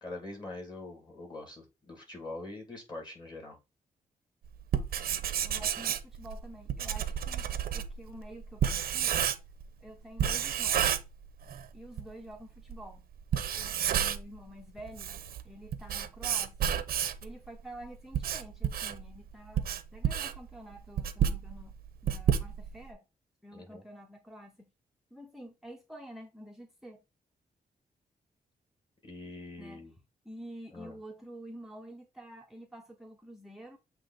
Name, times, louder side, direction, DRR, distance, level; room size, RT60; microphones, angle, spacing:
voice 1, 0.0-3.6 13.6-13.9 23.5-23.8 29.0-29.9 30.7-31.0, left 2 dB, 30° left, 2.8 m, -44 dB
Writing, 4.6-9.7 10.2-11.6 12.0-12.1 12.7-12.8 13.2-14.4 14.8-17.3 17.9-22.9, right 9 dB, 85° right, 0.7 m, -30 dB
voice 2, 5.4-7.4 7.7-9.2 9.8-11.0 11.7-13.0 13.5-16.7 17.2-21.7 22.0-23.0 23.4-24.7 25.1-27.0 29.6-29.9 30.2-33.8, right 1 dB, ahead, 0.7 m, -48 dB
7.7 x 3.0 x 4.2 m
wide cardioid pair, 120°, 15 cm